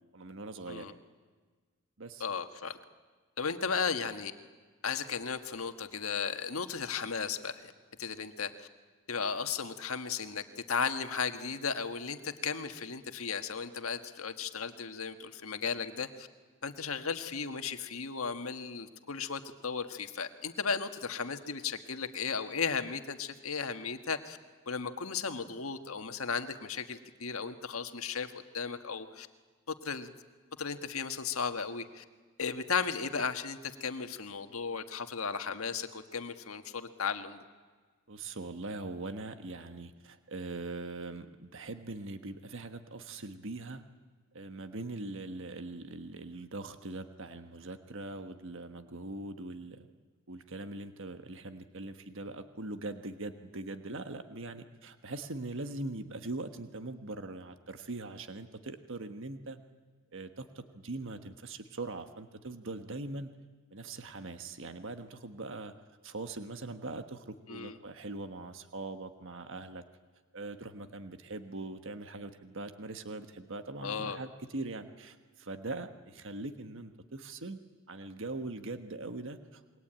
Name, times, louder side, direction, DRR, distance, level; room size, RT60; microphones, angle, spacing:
voice 1, 0.1-1.0 2.0-2.2 38.1-43.8 44.3-49.9 50.3-59.6 60.1-63.3 63.7-65.7 66.0-69.8 70.3-77.6 77.9-79.8, right 2 dB, 60° right, 8 dB, 1.4 m, -41 dB
voice 2, 2.2-2.8 3.4-4.3 4.8-7.7 8.0-8.7 9.1-16.3 16.6-24.4 24.7-29.3 29.7-30.1 30.6-32.0 32.4-37.4 67.5-67.8 73.8-74.2, left 5 dB, 75° left, 8 dB, 1.6 m, -35 dB
27.5 x 22.5 x 8.9 m, 1.5 s
head